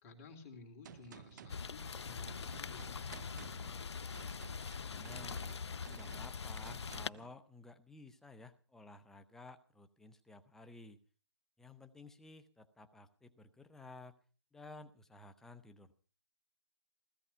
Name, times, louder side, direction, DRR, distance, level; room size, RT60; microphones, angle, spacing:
voice 1, 0.0-3.7, left 3 dB, 30° left, 5 dB, 3.4 m, -55 dB
Gunshot gunfire, 0.8-7.3, right 9 dB, 45° right, 0.9 m, -56 dB
Rain, 1.5-7.1, left 5 dB, 80° left, 0.7 m, -43 dB
voice 2, 4.8-5.4 5.8-11.0 11.6-14.2 14.5-15.9, left 2 dB, 5° left, 9 dB, 0.9 m, -54 dB
16.5 x 15.0 x 5.7 m, 0.40 s
hypercardioid pair, 150°, 14 cm